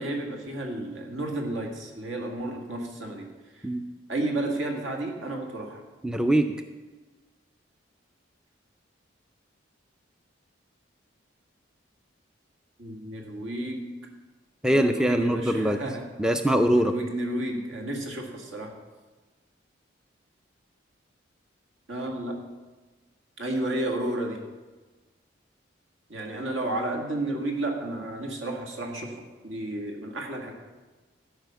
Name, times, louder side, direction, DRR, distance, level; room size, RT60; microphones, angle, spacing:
voice 1, 0.0-3.3 3.5-3.6 4.1-5.8 12.8-14.0 14.7-16.0 16.7-18.8 21.9-22.4 23.4-24.4 26.1-29.2 29.4-30.5, right 1 dB, 75° right, 2 dB, 1.7 m, -32 dB
voice 2, 6.0-6.5 14.6-15.8 16.2-16.9, right 1 dB, 5° right, 7 dB, 0.3 m, -22 dB
12.5 x 5.0 x 6.9 m, 1.3 s
head